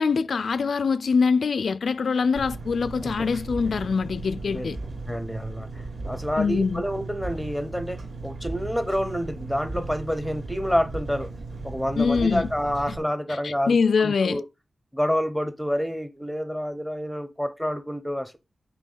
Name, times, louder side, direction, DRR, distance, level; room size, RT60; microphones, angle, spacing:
voice 1, 0.0-4.8 6.4-6.8 12.0-12.5 13.4-14.4, left 5 dB, 65° left, 0.3 m, -23 dB
Engine, 2.4-13.0, right 3 dB, 50° right, 2.2 m, -36 dB
voice 2, 5.1-11.3 11.6-14.4 14.9-18.4, equal, ahead, 0.8 m, -28 dB
8.3 x 3.5 x 5.5 m
wide cardioid pair, 175°, 0 cm